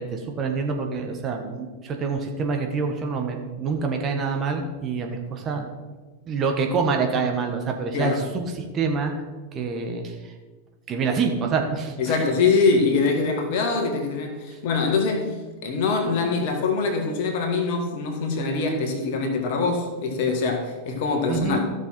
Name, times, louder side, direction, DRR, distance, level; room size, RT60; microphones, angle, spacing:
voice 1, 0.0-5.7 6.3-9.1 9.5-10.3 10.9-12.3 21.3-21.6, right 5 dB, 30° right, 3 dB, 1.4 m, -26 dB
voice 2, 12.0-15.4 15.6-21.6, left 4 dB, 50° left, 4 dB, 1.8 m, -23 dB
14.0 x 6.3 x 4.5 m, 1.3 s
figure-of-eight pair, 90°, 0 cm